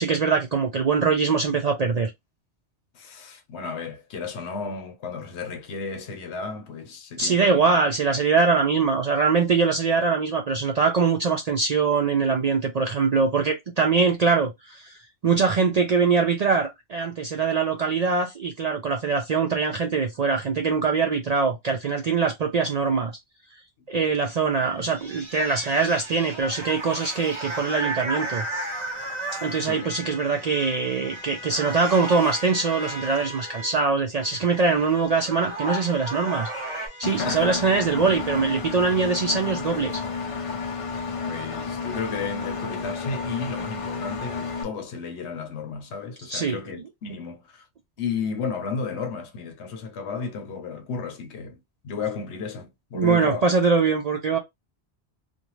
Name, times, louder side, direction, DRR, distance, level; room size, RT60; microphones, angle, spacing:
voice 1, 0.0-2.1 7.2-15.0 15.2-23.1 23.9-28.4 29.4-36.5 37.0-40.0 46.3-46.6 52.9-54.4, right 4 dB, 60° right, 0.4 m, -23 dB
voice 2, 2.9-7.6 29.7-29.9 37.0-37.6 41.3-47.6 48.0-51.6 51.8-53.5, left 5 dB, 75° left, 1.0 m, -33 dB
sound 1, 24.5-30.0 30.9-31.2 31.5-33.3 34.7-34.8 35.2-36.9, right 2 dB, 30° right, 0.7 m, -34 dB
sound 2, 27.4-33.8 34.2-39.5, left 1 dB, 35° left, 0.8 m, -41 dB
Engine, 37.0-44.6, left 5 dB, 50° left, 0.4 m, -31 dB
2.5 x 2.2 x 3.0 m
omnidirectional pair, 1.2 m